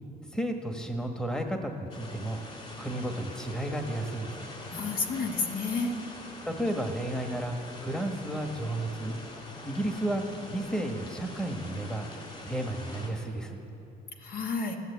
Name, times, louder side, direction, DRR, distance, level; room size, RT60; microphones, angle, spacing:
voice 1, 0.3-2.5 2.8-4.5 6.5-9.2 9.6-10.2 10.5-12.1 12.5-13.6, right 1 dB, 5° left, 4 dB, 1.3 m, -32 dB
sound 1, 1.9-13.1, left 1 dB, 35° left, 3.8 m, -44 dB
voice 2, 4.4-5.9 14.2-14.8, left 4 dB, 60° left, 2 dB, 1.8 m, -31 dB
15.0 x 11.0 x 8.1 m, 2.9 s
cardioid pair, 110°, 17 cm